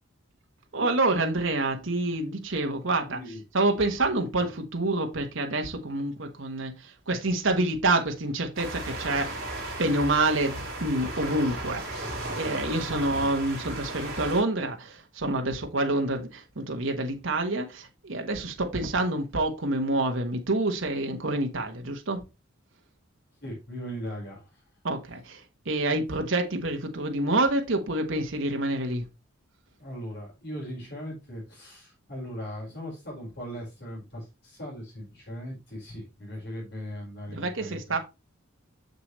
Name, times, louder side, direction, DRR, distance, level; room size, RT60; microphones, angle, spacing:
voice 1, 0.7-3.2 3.5-9.4 9.8-22.2 24.8-29.1 37.3-38.0, right 2 dB, 60° right, 1.2 m, -27 dB
voice 2, 3.0-3.4 4.4-4.5 13.0-13.3 23.4-24.6 29.8-37.9, equal, 50° left, 4.4 m, -39 dB
sound 1, 8.6-14.4, right 1 dB, 45° right, 3.4 m, -35 dB
6.7 x 6.6 x 3.1 m
head